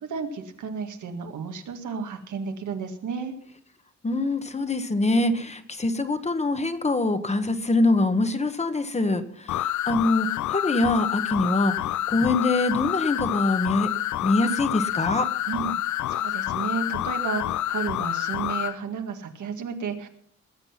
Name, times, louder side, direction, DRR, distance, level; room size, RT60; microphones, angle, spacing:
voice 1, 0.0-3.4 15.5-15.7 16.1-20.1, right 5 dB, 90° right, 5 dB, 1.9 m, -32 dB
voice 2, 4.0-13.9 14.2-15.3, left 2 dB, 25° left, 10 dB, 1.1 m, -24 dB
sound 1, 9.5-18.7, left 13 dB, 80° left, 0.5 m, -28 dB
20.0 x 7.9 x 5.8 m, 0.63 s
wide cardioid pair, 135°, 29 cm